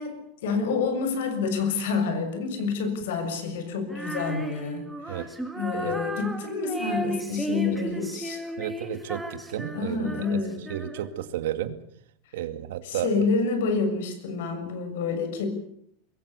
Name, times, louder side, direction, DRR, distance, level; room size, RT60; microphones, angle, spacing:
voice 1, 0.0-5.2 5.5-8.4 9.7-10.6 12.8-15.5, left 4 dB, 75° left, 8 dB, 6.8 m, -28 dB
Female singing, 3.9-11.3, right 1 dB, 5° right, 2.0 m, -35 dB
voice 2, 8.6-10.4 10.7-11.8 12.3-13.2, right 11 dB, 80° right, 10 dB, 2.3 m, -32 dB
24.0 x 22.0 x 7.0 m, 0.70 s
supercardioid pair, 170°, 0 cm